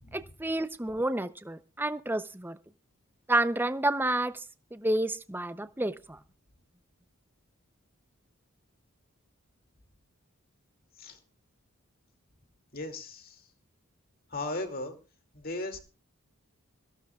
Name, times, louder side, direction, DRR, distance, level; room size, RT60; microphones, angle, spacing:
voice 1, 0.1-2.6 3.3-4.4 4.7-6.2, right 1 dB, 10° right, 12 dB, 0.6 m, -29 dB
voice 2, 12.7-13.4 14.3-14.9 15.3-15.8, left 2 dB, 45° left, 6 dB, 2.5 m, -36 dB
22.0 x 16.5 x 2.4 m, 0.33 s
head